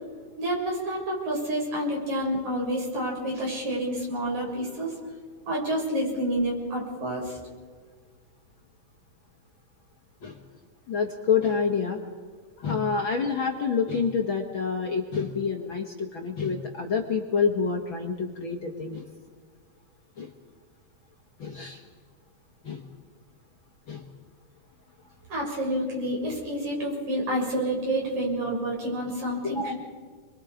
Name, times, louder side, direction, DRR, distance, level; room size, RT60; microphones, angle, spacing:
voice 1, 0.4-4.9 5.5-7.4 25.3-29.7, right 1 dB, 65° right, -2 dB, 8.3 m, -29 dB
voice 2, 10.9-12.0 12.6-19.0 20.2-20.3 21.4-21.8 22.6-22.9 23.9-24.1 29.4-29.7, left 5 dB, 45° left, 2 dB, 2.0 m, -27 dB
30.0 x 23.0 x 5.1 m, 1.5 s
omnidirectional pair, 3.6 m